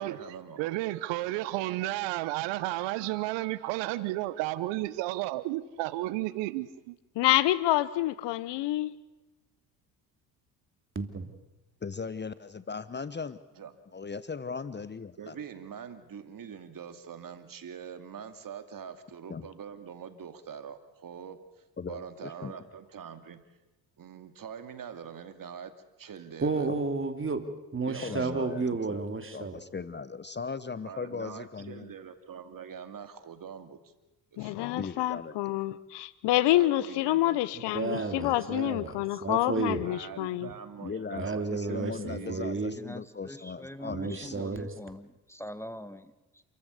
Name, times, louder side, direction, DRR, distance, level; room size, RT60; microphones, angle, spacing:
voice 1, 0.0-0.6 13.6-13.7 15.2-23.4 24.0-25.7 26.0-26.7 27.9-29.0 30.8-33.9 34.3-34.5 36.5-37.4 39.8-42.6, right 7 dB, 50° right, 2.6 m, -44 dB
voice 2, 0.6-7.0, right 17 dB, 75° right, 1.0 m, -32 dB
voice 3, 7.2-8.9 34.4-40.5, left 15 dB, 65° left, 1.1 m, -27 dB
voice 4, 10.9-11.3 26.4-27.5 27.7-29.6 37.7-39.0 39.2-39.9 40.4-40.5 41.2-42.7 43.9-44.7, right 4 dB, 25° right, 3.1 m, -32 dB
voice 5, 11.8-13.4 13.9-15.3 19.3-19.5 21.8-22.5 26.7-26.8 28.0-28.6 28.9-29.0 29.3-31.9 34.8-35.4 40.8-44.7, left 5 dB, 25° left, 1.0 m, -38 dB
voice 6, 42.7-46.4, equal, 5° left, 1.5 m, -43 dB
28.5 x 14.5 x 8.2 m
hypercardioid pair, 60°, 44 cm